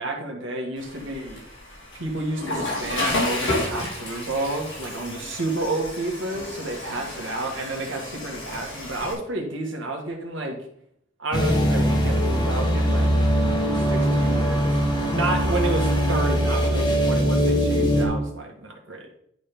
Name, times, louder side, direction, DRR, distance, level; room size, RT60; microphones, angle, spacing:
voice 1, 0.0-1.4 2.0-10.6 11.2-13.1 13.7-14.8 15.1-19.2, right 2 dB, 75° right, 2 dB, 1.9 m, -30 dB
Water / Toilet flush, 0.8-9.1, left 1 dB, 70° left, 3.4 m, -31 dB
sound 1, 11.3-18.0, equal, 20° left, 1.5 m, -21 dB
10.5 x 4.1 x 5.4 m, 0.70 s
head